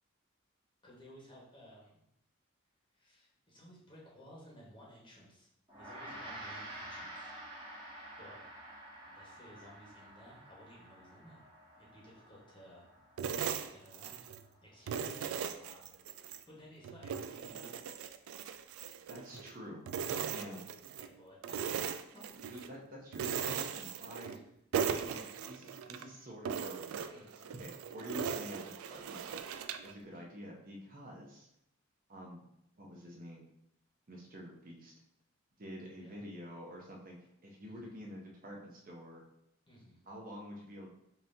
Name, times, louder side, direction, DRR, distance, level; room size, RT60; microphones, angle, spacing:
voice 1, 0.8-2.1 2.9-5.5 5.8-7.3 8.2-8.4 9.1-11.4 11.8-12.8 13.7-14.2 14.6-15.2 15.6-16.1 16.5-17.7 20.1-20.6 21.0-22.4 23.2-23.6 24.3-24.4 27.1-27.4 30.0-30.2 36.0-36.2 37.7-38.0 39.7-40.0, equal, 25° left, -5 dB, 1.2 m, -56 dB
Gong, 5.7-15.2, right 1 dB, 25° right, 1.4 m, -50 dB
sound 1, 13.2-14.5 14.9-16.4 16.8-19.5 19.9-21.1 21.4-22.7 23.1-24.5 24.7-26.0 26.4-29.9, right 7 dB, 85° right, 0.3 m, -38 dB
voice 2, 19.1-19.8 20.3-20.6 22.5-24.4 24.8-29.6 29.8-31.5 32.1-32.4 32.8-33.4 34.1-34.9 35.6-37.2 37.4-39.2 40.1-40.9, equal, 40° right, -1 dB, 0.7 m, -48 dB
5.4 x 2.8 x 2.7 m, 0.78 s
head